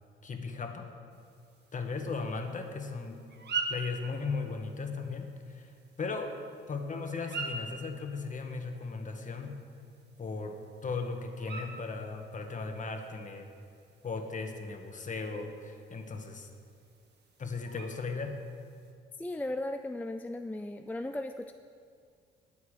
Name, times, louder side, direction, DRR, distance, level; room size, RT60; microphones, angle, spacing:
voice 1, 0.2-0.9 1.7-3.2 3.7-5.7 6.0-6.3 6.7-9.6 10.2-10.5 10.8-13.5 14.0-16.5 17.4-18.3, left 4 dB, 40° left, 4 dB, 1.6 m, -37 dB
sound 1, 1.1-18.9, right 4 dB, 60° right, 1.7 m, -45 dB
voice 2, 19.2-21.5, left 1 dB, 10° left, 7 dB, 0.4 m, -36 dB
20.0 x 7.2 x 5.0 m, 2.3 s
cardioid pair, 90°, 20 cm